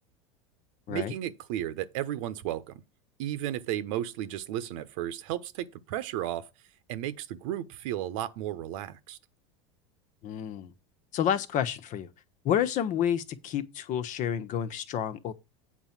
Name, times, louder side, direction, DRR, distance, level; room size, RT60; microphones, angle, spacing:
voice 1, 0.9-2.8 3.2-6.5 6.9-9.2, right 12 dB, 70° right, 1.2 m, -34 dB
voice 2, 10.2-10.7 11.1-12.1 12.4-15.3, left 9 dB, 45° left, 1.3 m, -29 dB
8.8 x 4.6 x 7.3 m
hypercardioid pair, 105°, 17 cm